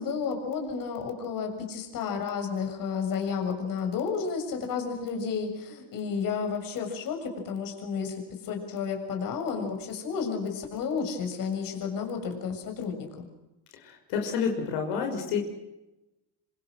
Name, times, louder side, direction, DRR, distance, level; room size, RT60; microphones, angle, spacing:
voice 1, 0.0-13.2, left 6 dB, 55° left, 4 dB, 6.9 m, -32 dB
voice 2, 13.7-15.4, left 6 dB, 90° left, 3 dB, 5.8 m, -29 dB
27.5 x 26.5 x 6.4 m, 0.99 s
cardioid pair, 135°, 40 cm